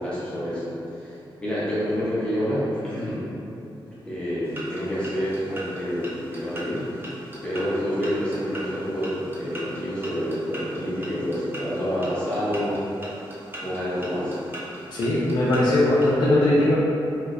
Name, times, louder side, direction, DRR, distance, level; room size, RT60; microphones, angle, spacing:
voice 1, 0.0-3.3 4.0-6.8 7.4-12.8 13.6-14.4, equal, 10° left, -11 dB, 0.8 m, -28 dB
sound 1, 4.4-16.2, right 1 dB, 25° right, 0.6 m, -40 dB
voice 2, 14.9-16.8, left 1 dB, 65° left, -7 dB, 0.5 m, -20 dB
3.2 x 2.8 x 2.4 m, 2.8 s
wide cardioid pair, 140°, 9 cm